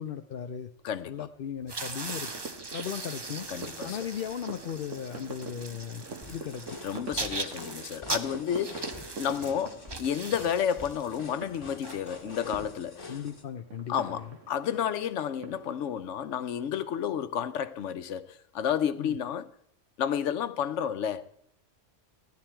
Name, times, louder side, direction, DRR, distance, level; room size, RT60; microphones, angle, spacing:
voice 1, 0.0-0.7 1.1-2.3 2.7-3.5 3.8-6.7 13.1-14.3 19.0-19.2, left 8 dB, 60° left, 0.7 m, -37 dB
voice 2, 0.8-1.3 3.5-4.0 6.8-13.2 13.9-19.5 20.0-21.3, left 8 dB, 75° left, 1.0 m, -31 dB
sound 1, 1.6-12.6, right 3 dB, 25° right, 0.6 m, -40 dB
sound 2, 2.1-15.9, right 3 dB, 75° right, 1.7 m, -46 dB
sound 3, 6.2-13.4, left 3 dB, 25° left, 1.8 m, -46 dB
15.5 x 10.5 x 4.4 m
omnidirectional pair, 1.3 m